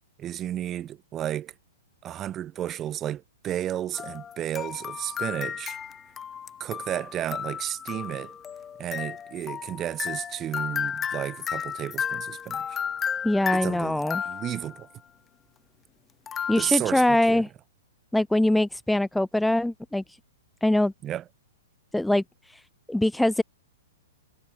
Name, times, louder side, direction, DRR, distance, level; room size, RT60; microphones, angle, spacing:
voice 1, 0.2-1.5 2.0-5.8 6.6-8.3 8.8-12.8 13.5-14.9 16.6-17.4 21.0-21.2, right 11 dB, 25° right, 1.0 m, -32 dB
sound 1, 3.9-14.8 16.3-16.7, left 8 dB, 20° left, 1.3 m, -34 dB
voice 2, 13.2-14.2 16.5-17.5 18.1-20.0 20.6-20.9 21.9-22.2 22.5-22.6 22.9-23.4, left 1 dB, 5° left, 0.3 m, -23 dB
figure-of-eight pair, 110°, 0 cm